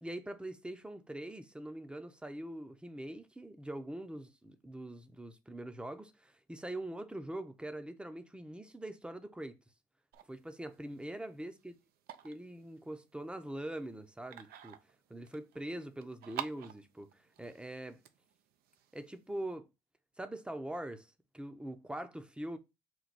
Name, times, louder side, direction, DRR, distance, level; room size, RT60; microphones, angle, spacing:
voice 1, 0.0-9.6 10.3-11.7 12.2-14.8 15.1-18.0 18.9-19.7 20.2-21.1 21.3-22.6, right 1 dB, 5° right, 0.6 m, -43 dB
sound 1, 10.1-19.5, right 11 dB, 75° right, 0.5 m, -50 dB
4.6 x 2.2 x 4.1 m
cardioid pair, 90°, 16 cm